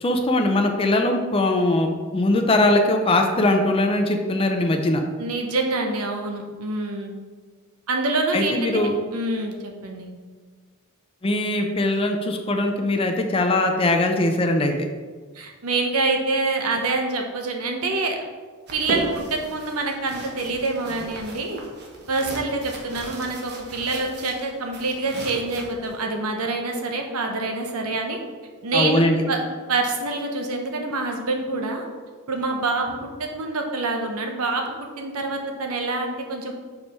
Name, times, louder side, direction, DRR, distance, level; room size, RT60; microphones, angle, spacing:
voice 1, 0.0-5.0 8.3-8.9 11.2-14.9 28.7-29.2, left 2 dB, 25° left, 3 dB, 0.5 m, -21 dB
voice 2, 5.2-7.1 7.9-10.1 15.3-18.2 18.7-21.6 22.1-28.2 28.6-29.4 29.7-31.8 32.3-36.5, right 3 dB, 85° right, 2 dB, 1.0 m, -26 dB
sound 1, 18.7-25.9, right 1 dB, 50° right, 1.0 m, -36 dB
5.3 x 4.6 x 5.3 m, 1.5 s
head